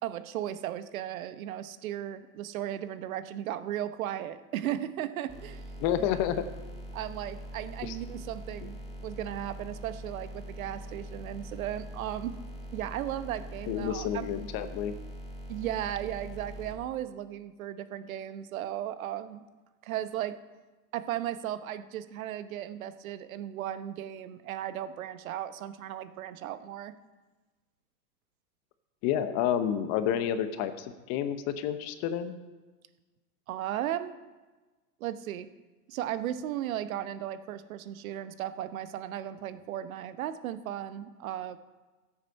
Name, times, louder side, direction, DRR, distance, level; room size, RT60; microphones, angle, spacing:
voice 1, 0.0-5.6 6.9-12.4 12.7-14.3 15.5-19.4 19.8-20.4 20.9-26.9 33.5-34.2 35.0-35.5 35.9-41.6, right 11 dB, 60° right, 12 dB, 1.0 m, -36 dB
sound 1, 5.3-16.7, equal, 15° left, 2.0 m, -43 dB
voice 2, 5.8-6.5 7.8-8.0 8.6-8.7 13.7-15.0 29.0-32.4, left 9 dB, 35° left, 10 dB, 0.8 m, -30 dB
14.0 x 8.4 x 5.3 m, 1.2 s
hypercardioid pair, 125°, 47 cm